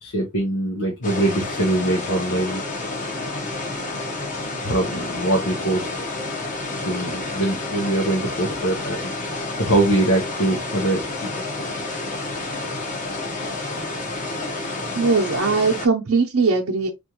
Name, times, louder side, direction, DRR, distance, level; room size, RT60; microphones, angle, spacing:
voice 1, 0.0-2.6 4.6-5.9 6.8-9.1 9.6-11.3 11.6-11.7, right 1 dB, 80° left, 1.0 m, -23 dB
sound 1, 1.0-15.9, left 2 dB, 35° left, 1.1 m, -29 dB
voice 2, 14.9-16.9, right 4 dB, 80° right, 0.8 m, -20 dB
4.3 x 2.5 x 2.9 m
head